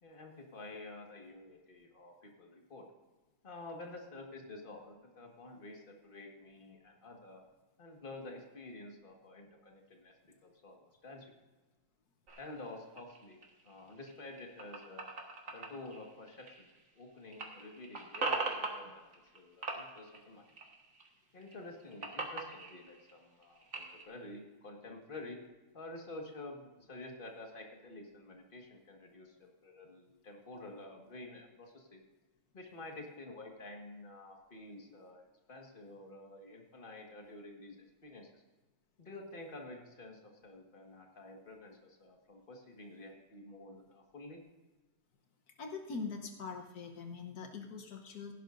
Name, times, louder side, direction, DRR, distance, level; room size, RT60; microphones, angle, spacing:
voice 1, 0.0-2.8 3.4-7.4 7.8-11.3 12.4-13.4 13.6-15.1 15.5-16.7 16.9-19.0 19.3-20.4 21.3-25.4 25.7-32.0 32.5-37.8 38.0-38.4 39.0-44.4, left 2 dB, 35° left, 1 dB, 1.8 m, -50 dB
sound 1, 12.3-17.0 17.3-19.4 19.6-21.1 21.4-24.0, right 3 dB, 55° right, 2.0 m, -41 dB
voice 2, 45.6-48.3, left 4 dB, 80° left, 4 dB, 1.5 m, -42 dB
16.5 x 11.0 x 2.6 m, 1.2 s
omnidirectional pair, 1.6 m